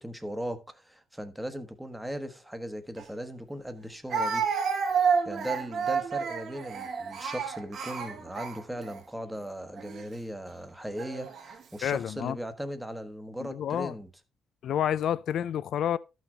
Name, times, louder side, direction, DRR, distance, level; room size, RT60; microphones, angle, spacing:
voice 1, 0.0-4.5 5.2-14.1, equal, 5° right, 1.1 m, -38 dB
Speech, 3.0-3.1 4.1-9.0 9.8-10.0 11.0-11.6, right 6 dB, 55° right, 1.6 m, -30 dB
voice 2, 11.8-12.4 13.4-13.9 14.6-16.0, left 10 dB, 65° left, 0.4 m, -29 dB
13.0 x 6.3 x 3.3 m
cardioid pair, 130°, 0 cm